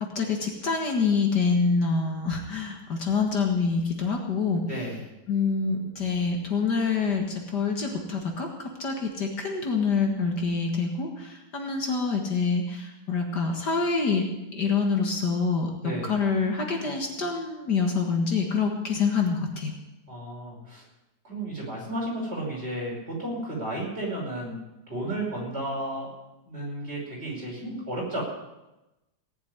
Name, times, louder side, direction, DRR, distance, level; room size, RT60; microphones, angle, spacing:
voice 1, 0.0-4.6 5.3-14.3 14.5-15.7 16.0-19.7, left 4 dB, 55° left, 2 dB, 2.2 m, -26 dB
voice 2, 4.6-5.0 15.8-16.1 20.1-20.8 21.2-24.6 24.9-26.1 26.5-28.2, right 1 dB, 30° right, -4 dB, 5.7 m, -33 dB
18.0 x 7.3 x 9.7 m, 0.98 s
omnidirectional pair, 2.2 m